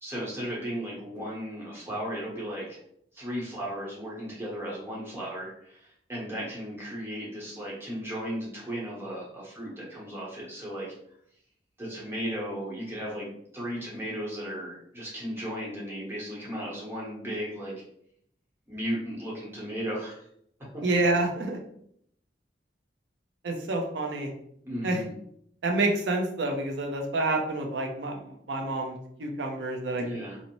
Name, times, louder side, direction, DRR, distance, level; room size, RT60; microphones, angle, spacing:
voice 1, 0.0-2.8 3.1-10.9 11.8-17.7 18.7-20.2 20.7-20.8 24.6-25.1 30.0-30.4, equal, 15° right, -6 dB, 0.9 m, -35 dB
voice 2, 20.8-21.6 23.4-24.3 24.8-25.0 25.6-30.0, right 2 dB, 80° right, 2 dB, 0.5 m, -28 dB
2.6 x 2.0 x 2.9 m, 0.70 s
head